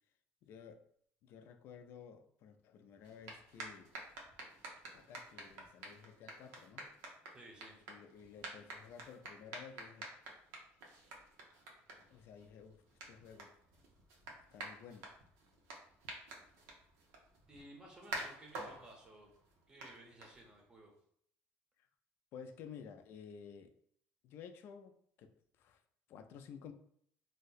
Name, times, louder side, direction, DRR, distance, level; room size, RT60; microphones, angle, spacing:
voice 1, 0.4-0.9 1.2-3.9 4.9-6.9 7.9-10.1 12.0-13.5 14.5-15.1 22.3-23.7 24.2-25.8 26.1-26.7, left 7 dB, 50° left, 0.3 m, -53 dB
sound 1, 3.0-20.8, right 2 dB, 85° right, 0.7 m, -50 dB
voice 2, 7.3-7.8 17.5-19.3 19.7-20.9, right 1 dB, 15° right, 0.6 m, -56 dB
2.7 x 2.1 x 3.9 m
cardioid pair, 170°, 5 cm